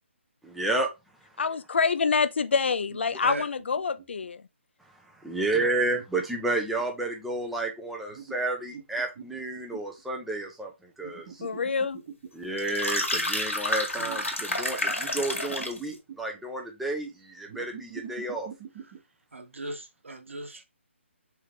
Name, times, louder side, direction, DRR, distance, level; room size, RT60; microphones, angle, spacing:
voice 1, 0.4-0.9 5.2-11.4 12.3-18.5, right 2 dB, ahead, 0.5 m, -31 dB
voice 2, 1.4-4.4 11.4-12.0, left 5 dB, 60° left, 0.5 m, -26 dB
sound 1, 2.4-4.3 5.3-7.1 8.1-10.0 11.0-12.5 13.9-14.6 14.8-16.4 17.5-19.0, right 7 dB, 30° right, 1.1 m, -45 dB
sound 2, 12.6-15.8, left 2 dB, 80° left, 1.5 m, -29 dB
voice 3, 19.3-20.6, right 1 dB, 70° right, 1.1 m, -37 dB
3.6 x 3.3 x 3.1 m
figure-of-eight pair, 145°, 7 cm